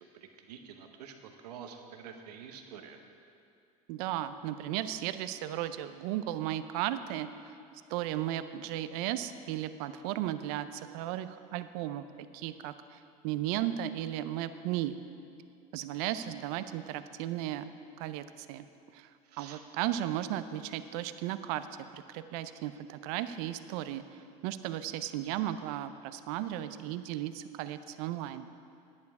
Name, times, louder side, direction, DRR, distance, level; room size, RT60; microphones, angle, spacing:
voice 1, 0.1-1.1 1.4-3.0 19.3-19.6, right 7 dB, 90° right, 5 dB, 1.0 m, -47 dB
voice 2, 3.9-7.3 7.9-12.0 12.3-13.0 13.2-14.9 15.7-17.7 18.0-18.6 18.9-19.1 19.4-21.7 21.9-28.5, right 12 dB, 70° right, 12 dB, 0.6 m, -35 dB
10.5 x 9.7 x 4.8 m, 2.5 s
supercardioid pair, 90°, 20 cm